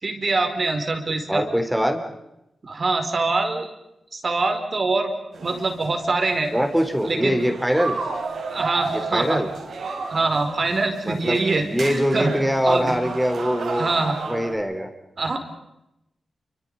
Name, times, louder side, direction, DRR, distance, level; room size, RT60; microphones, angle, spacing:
voice 1, 0.0-1.4 2.6-3.7 4.1-5.1 5.4-6.5 7.1-7.4 8.5-9.4 10.1-12.3 12.6-12.9 13.7-14.2 15.2-15.4, right 3 dB, 45° right, 5 dB, 4.4 m, -24 dB
voice 2, 1.3-2.0 6.5-8.0 9.1-9.5 11.1-13.9 14.3-14.9, equal, 5° right, 5 dB, 3.6 m, -23 dB
sound 1, 5.3-14.5, right 4 dB, 80° right, 6.1 m, -33 dB
29.0 x 25.5 x 5.4 m, 0.86 s
cardioid pair, 80°, 0 cm